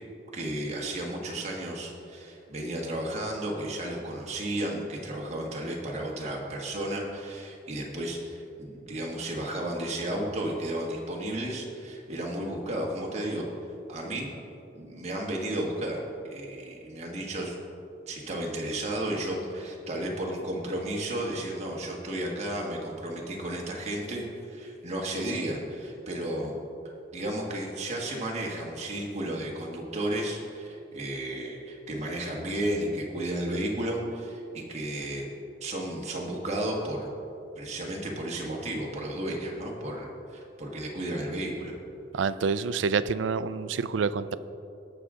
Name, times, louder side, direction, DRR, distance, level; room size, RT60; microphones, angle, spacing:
voice 1, 0.3-13.4 13.9-14.3 14.7-17.5 18.1-26.6 27.1-35.2 35.6-37.1 37.5-41.7, right 1 dB, 35° right, -1 dB, 1.6 m, -33 dB
voice 2, 42.1-44.4, right 5 dB, 85° right, 15 dB, 0.4 m, -27 dB
18.5 x 6.3 x 3.7 m, 2.7 s
head